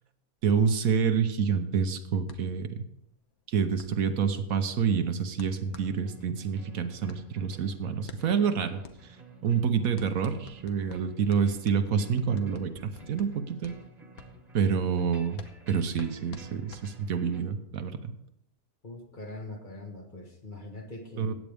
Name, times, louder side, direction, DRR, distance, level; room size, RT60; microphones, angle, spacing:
voice 1, 0.4-2.8 3.5-8.8 9.4-13.7 14.5-15.4 15.7-18.1 21.2-21.3, right 6 dB, 75° right, 9 dB, 1.3 m, -27 dB
sound 1, 2.2-17.4, left 6 dB, 80° left, 1.4 m, -52 dB
sound 2, 5.6-17.4, right 2 dB, 30° right, 1.5 m, -52 dB
voice 2, 18.8-21.3, left 2 dB, 35° left, 2 dB, 1.5 m, -42 dB
15.5 x 9.0 x 3.5 m, 0.78 s
omnidirectional pair, 1.5 m